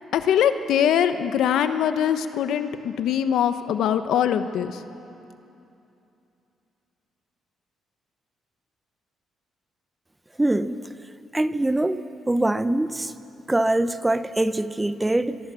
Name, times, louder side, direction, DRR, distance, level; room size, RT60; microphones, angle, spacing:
voice 1, 0.1-4.8, left 9 dB, 80° left, 9 dB, 1.1 m, -22 dB
voice 2, 10.4-10.8 11.3-13.1 13.5-15.4, right 1 dB, 10° right, 13 dB, 0.8 m, -23 dB
23.5 x 23.5 x 7.0 m, 2.8 s
cardioid pair, 90°, 0 cm